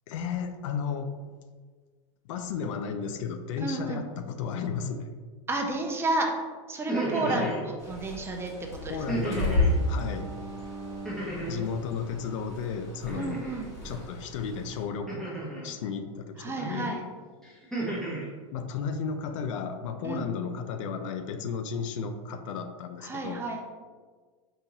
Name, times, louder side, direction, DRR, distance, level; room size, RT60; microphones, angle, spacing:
voice 1, 0.1-1.1 2.3-5.1 7.2-7.6 8.9-10.3 11.5-13.5 13.8-15.3 15.6-17.0 18.5-23.4, left 6 dB, 70° left, 8 dB, 0.4 m, -33 dB
voice 2, 3.6-4.0 5.5-6.4 6.7-8.5 8.8-9.0 13.1-13.7 16.4-17.0 20.0-20.3 23.0-23.6, right 2 dB, 15° right, 2 dB, 0.4 m, -31 dB
sound 1, 6.7-7.6 9.1-9.8 11.0-11.7 13.1-13.6 15.1-15.7 16.6-16.9 17.4-18.3, right 2 dB, 5° left, 0.9 m, -33 dB
Bird, 7.8-14.8, left 2 dB, 20° left, 1.2 m, -33 dB
Bowed string instrument, 8.6-12.7, right 3 dB, 60° right, 0.6 m, -44 dB
3.8 x 2.6 x 2.9 m, 1.5 s
supercardioid pair, 125°, 17 cm